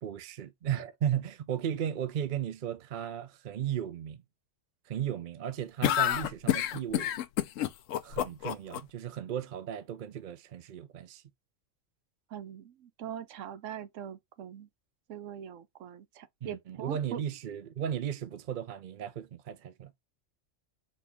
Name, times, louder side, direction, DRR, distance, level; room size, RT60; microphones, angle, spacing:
voice 1, 0.0-4.2 4.9-7.1 8.0-11.2 16.4-19.9, right 9 dB, 55° right, 0.6 m, -35 dB
sound 1, 5.8-8.8, left 12 dB, 85° left, 1.0 m, -28 dB
voice 2, 12.3-14.7 15.1-17.2, right 9 dB, 80° right, 1.1 m, -42 dB
4.3 x 2.8 x 3.4 m
omnidirectional pair, 1.3 m